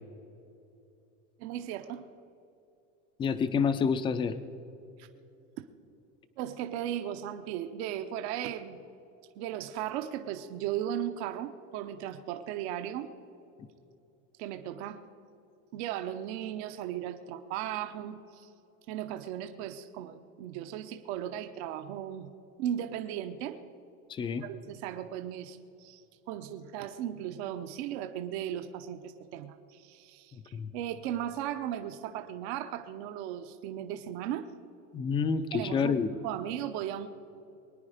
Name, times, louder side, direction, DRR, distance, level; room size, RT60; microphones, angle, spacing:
voice 1, 1.4-2.1 5.0-5.1 5.6-5.7 6.4-8.8 9.4-13.1 14.4-15.0 15.7-18.5 18.9-22.3 22.6-23.6 24.4-34.5 35.5-37.1, right 11 dB, 65° right, 8 dB, 0.8 m, -37 dB
voice 2, 3.2-4.3 24.1-24.4 30.3-30.7 34.9-36.1, left 6 dB, 15° left, 12 dB, 0.4 m, -28 dB
22.5 x 9.9 x 5.0 m, 2.8 s
cardioid pair, 165°, 35 cm